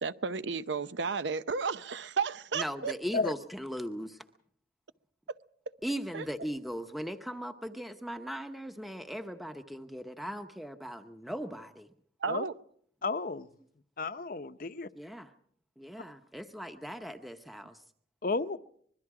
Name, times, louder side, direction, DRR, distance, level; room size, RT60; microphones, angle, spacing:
voice 1, 0.0-2.9 6.1-6.3 12.2-12.5, right 5 dB, 85° right, 0.8 m, -33 dB
voice 2, 2.5-4.2 5.8-11.9 14.9-15.3 15.8-17.8, equal, ahead, 0.8 m, -39 dB
voice 3, 13.0-13.5 14.0-14.9 18.2-18.6, left 3 dB, 50° left, 0.7 m, -32 dB
25.0 x 21.5 x 4.8 m
head